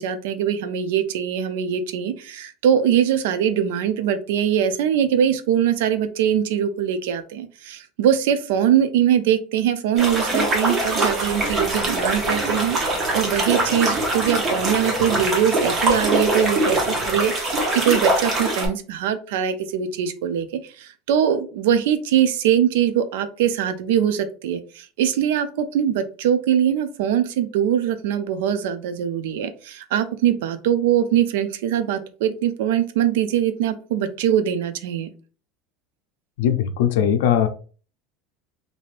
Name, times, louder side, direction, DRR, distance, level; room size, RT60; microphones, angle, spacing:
voice 1, 0.0-20.5 20.8-35.1, right 9 dB, 85° right, 11 dB, 0.4 m, -22 dB
sound 1, 10.0-18.7, right 1 dB, 25° right, 0.8 m, -23 dB
sound 2, 11.2-17.2, right 2 dB, 70° right, 1.0 m, -39 dB
voice 2, 36.4-37.5, left 9 dB, 85° left, 8 dB, 0.5 m, -19 dB
3.2 x 2.6 x 2.5 m, 0.39 s
supercardioid pair, 160°, 0 cm